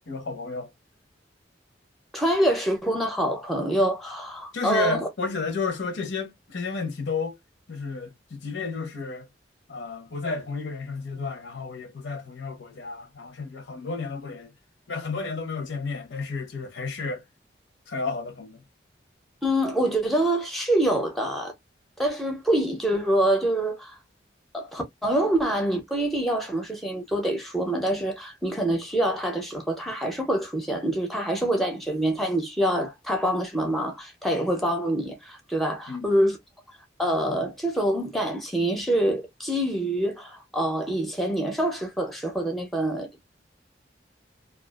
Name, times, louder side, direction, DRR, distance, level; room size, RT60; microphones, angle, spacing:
voice 1, 0.1-0.7 4.5-7.4 7.7-9.3 9.7-14.5 14.9-17.2 17.9-18.6 35.9-36.1, left 4 dB, 75° left, 0.7 m, -32 dB
voice 2, 2.1-5.1 19.4-21.5 22.0-24.0 24.5-36.4 37.0-43.1, right 1 dB, ahead, 0.5 m, -25 dB
2.3 x 2.3 x 2.3 m
head